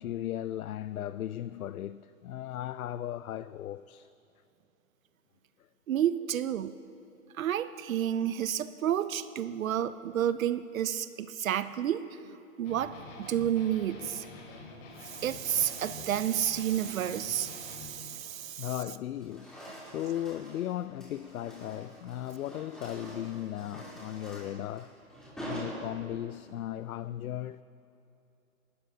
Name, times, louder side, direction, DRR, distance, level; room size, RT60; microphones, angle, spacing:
voice 1, 0.0-4.1 18.6-25.0 25.4-27.6, left 12 dB, 80° left, 0.5 m, -37 dB
voice 2, 5.9-6.8 7.4-14.3 15.0-18.7, right 10 dB, 70° right, 0.7 m, -31 dB
sound 1, 12.6-17.9, left 4 dB, 40° left, 2.7 m, -47 dB
sound 2, 13.0-13.5 14.6-16.2 16.6-16.9 17.4-18.8 19.1-26.4, right 1 dB, ahead, 3.2 m, -47 dB
28.5 x 12.5 x 2.8 m
hypercardioid pair, 145°, 42 cm